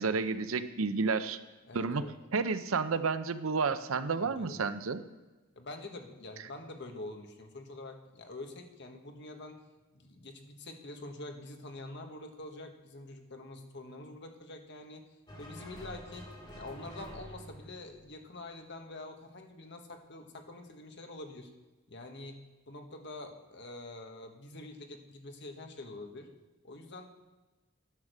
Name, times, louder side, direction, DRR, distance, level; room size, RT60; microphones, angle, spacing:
voice 1, 0.0-1.4 1.7-5.0, right 4 dB, 75° right, 12 dB, 0.6 m, -31 dB
voice 2, 1.6-2.1 4.2-4.6 5.5-9.6 9.9-15.0 15.4-21.5 21.9-26.3 26.6-27.2, left 2 dB, 55° left, 4 dB, 1.3 m, -46 dB
sound 1, 15.3-18.8, equal, 20° left, 1.8 m, -49 dB
10.5 x 6.6 x 6.6 m, 1.2 s
head